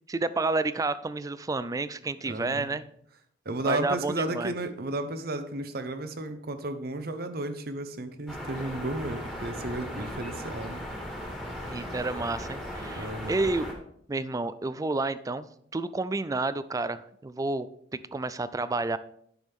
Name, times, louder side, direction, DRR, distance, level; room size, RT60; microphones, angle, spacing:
voice 1, 0.1-2.9 3.6-4.5 11.7-13.7 14.1-19.0, right 3 dB, 20° right, 15 dB, 0.3 m, -30 dB
voice 2, 2.3-2.7 3.4-10.8 13.0-13.4, right 2 dB, 55° right, 9 dB, 0.9 m, -33 dB
sound 1, 8.3-13.7, equal, 5° left, 1.8 m, -37 dB
10.5 x 6.2 x 3.6 m, 0.68 s
head